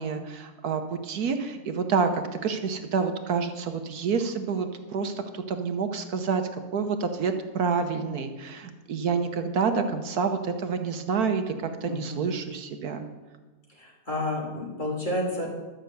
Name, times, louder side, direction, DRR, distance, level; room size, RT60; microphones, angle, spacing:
voice 1, 0.0-6.4 6.7-13.1, right 5 dB, 60° right, 7 dB, 1.4 m, -28 dB
voice 2, 11.8-12.2 13.7-15.5, left 1 dB, 25° left, -3 dB, 3.2 m, -30 dB
12.5 x 6.5 x 7.9 m, 1.3 s
omnidirectional pair, 1.9 m